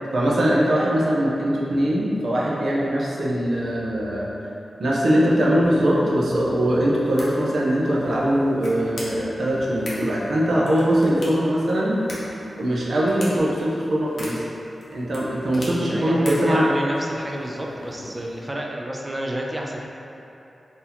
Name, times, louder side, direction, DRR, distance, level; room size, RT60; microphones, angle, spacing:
voice 1, 0.1-4.3 4.8-12.0 12.6-14.4 14.9-16.7, equal, 70° right, -5 dB, 0.6 m, -21 dB
sound 1, 5.6-18.5, left 1 dB, 60° left, 0.7 m, -41 dB
voice 2, 15.8-19.8, right 1 dB, 15° right, -1 dB, 0.3 m, -29 dB
2.8 x 2.7 x 3.9 m, 2.9 s
wide cardioid pair, 130°, 0 cm